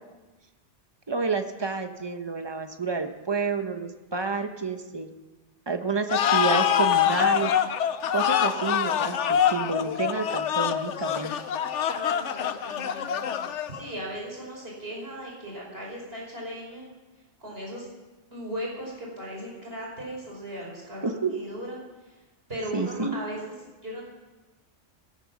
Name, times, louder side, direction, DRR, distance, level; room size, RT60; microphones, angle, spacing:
voice 1, 1.1-5.1 5.7-7.5 8.1-11.4 21.0-21.3 22.7-23.2, right 4 dB, 25° right, 7 dB, 1.0 m, -29 dB
sound 1, 6.1-13.9, left 9 dB, 85° left, 1.0 m, -25 dB
voice 2, 11.9-16.9 17.4-17.9 18.3-22.2 22.5-23.5 23.8-24.0, equal, 55° right, -3 dB, 5.4 m, -37 dB
16.5 x 14.0 x 6.1 m, 1.2 s
omnidirectional pair, 1.2 m